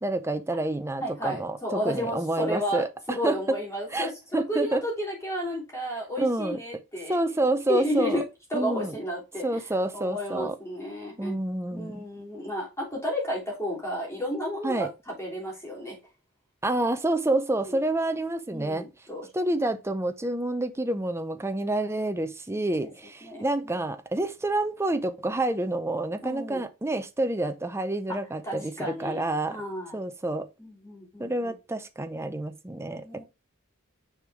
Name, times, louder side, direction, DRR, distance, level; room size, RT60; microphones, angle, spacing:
voice 1, 0.0-3.6 3.9-4.8 6.2-6.6 7.1-8.2 8.5-9.0 9.4-10.5 11.2-12.0 14.6-14.9 16.6-18.8 19.3-29.6 29.9-30.5 31.2-33.2, right 2 dB, 10° right, 0.6 m, -28 dB
voice 2, 1.0-7.2 7.7-8.2 8.5-9.6 9.9-11.3 11.7-16.0 17.7-17.8 18.5-19.3 22.8-22.9 23.2-23.7 26.2-26.6 28.1-28.2 28.4-30.0 30.6-31.5 32.9-33.2, equal, 15° left, 3.4 m, -32 dB
6.5 x 4.8 x 3.5 m
head